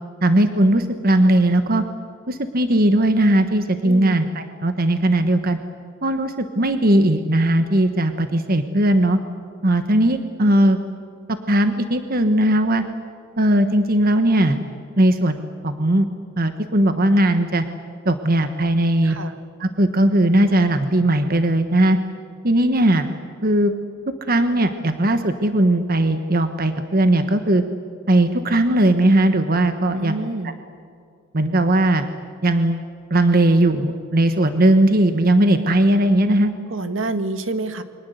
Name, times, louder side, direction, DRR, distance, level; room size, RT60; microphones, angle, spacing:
voice 1, 0.2-1.8 2.3-5.6 6.0-9.2 9.6-10.8 11.5-12.8 13.4-14.6 15.0-16.1 16.4-17.6 18.0-19.2 19.6-22.0 22.4-23.1 23.4-23.7 24.3-27.6 28.1-30.2 31.3-32.1 32.4-32.8 33.1-36.5, right 1 dB, 50° right, 8 dB, 1.3 m, -18 dB
voice 2, 3.8-4.3 19.0-19.4 29.9-30.6 36.7-37.8, right 2 dB, 75° right, 9 dB, 1.8 m, -27 dB
29.0 x 24.0 x 8.1 m, 2.3 s
head